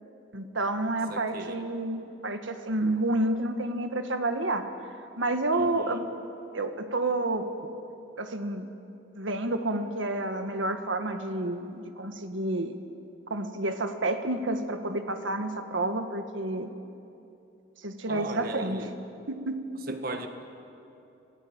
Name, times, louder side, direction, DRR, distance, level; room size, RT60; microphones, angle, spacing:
voice 1, 0.3-4.7 5.2-6.0 6.5-7.5 8.2-8.7 9.2-12.7 13.3-16.7 17.8-18.8 19.3-19.6 19.9-20.0, right 2 dB, 90° right, 7 dB, 1.7 m, -29 dB
voice 2, 1.1-1.6 5.5-6.1 18.1-18.9 19.9-20.3, right 2 dB, 50° right, 6 dB, 1.9 m, -37 dB
25.5 x 19.0 x 9.0 m, 2.7 s
head